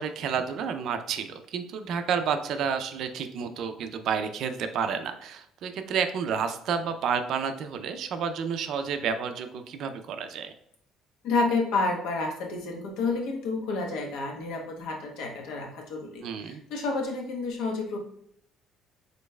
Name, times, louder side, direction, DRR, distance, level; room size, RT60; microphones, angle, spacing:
voice 1, 0.0-10.5 16.2-16.6, right 6 dB, 55° right, 8 dB, 0.4 m, -30 dB
voice 2, 11.2-18.0, left 3 dB, 75° left, 1 dB, 1.1 m, -30 dB
5.2 x 3.9 x 2.2 m, 0.74 s
cardioid pair, 165°, 0 cm